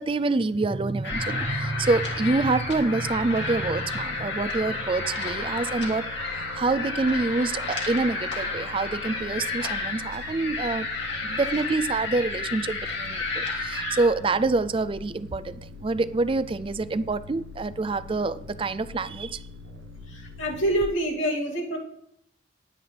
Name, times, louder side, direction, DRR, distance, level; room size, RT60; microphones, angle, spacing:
voice 1, 0.0-6.0 6.3-10.9 11.2-19.4, right 3 dB, 25° right, 14 dB, 0.4 m, -26 dB
sound 1, 1.0-14.1, left 3 dB, 65° left, 2.4 m, -31 dB
sound 2, 1.1-20.8, left 2 dB, 85° right, 0.8 m, -44 dB
voice 2, 20.1-21.8, right 1 dB, 85° left, -2 dB, 2.7 m, -26 dB
19.0 x 8.8 x 3.4 m, 0.76 s
head